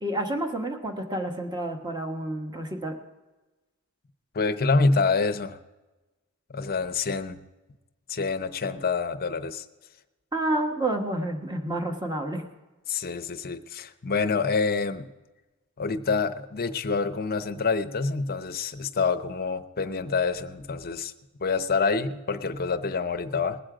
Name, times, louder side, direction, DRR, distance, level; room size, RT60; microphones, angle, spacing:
voice 1, 0.0-3.0 10.3-12.4, right 1 dB, 20° right, 3 dB, 1.3 m, -29 dB
voice 2, 4.3-5.6 6.5-7.4 8.1-9.6 12.9-15.1 15.8-21.1 21.4-23.6, left 4 dB, 45° left, 8 dB, 0.7 m, -27 dB
20.5 x 7.7 x 5.0 m, 1.1 s
head